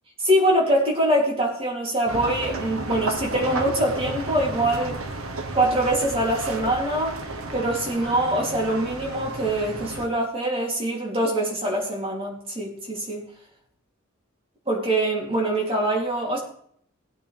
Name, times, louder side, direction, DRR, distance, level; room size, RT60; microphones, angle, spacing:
voice 1, 0.2-5.0 5.5-7.2 7.5-13.3 14.7-16.4, right 1 dB, 25° right, -2 dB, 3.1 m, -24 dB
sound 1, 2.1-10.1, right 2 dB, 85° right, 1.2 m, -33 dB
18.0 x 8.6 x 3.5 m, 0.65 s
head